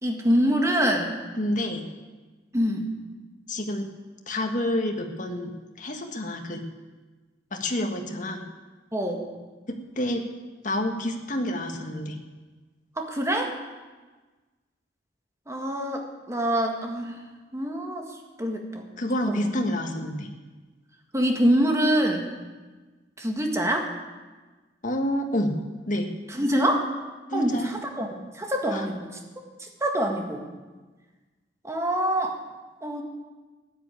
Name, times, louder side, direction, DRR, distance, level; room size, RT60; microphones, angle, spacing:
voice 1, 0.0-1.2 2.5-2.9 8.9-9.2 13.0-13.5 15.5-17.2 17.5-18.1 18.4-18.8 19.3-19.5 21.1-22.3 23.2-23.9 26.3-26.9 27.3-29.1 29.6-30.4 31.6-32.4 32.8-33.0, equal, 15° right, 2 dB, 1.8 m, -25 dB
voice 2, 1.4-1.9 3.5-3.9 4.3-6.6 7.5-8.4 9.7-10.2 10.6-12.2 19.0-20.3 24.8-25.5 25.9-26.1 27.3-27.7 28.7-28.9, left 1 dB, 45° left, 4 dB, 1.6 m, -28 dB
14.0 x 9.9 x 8.6 m, 1.3 s
head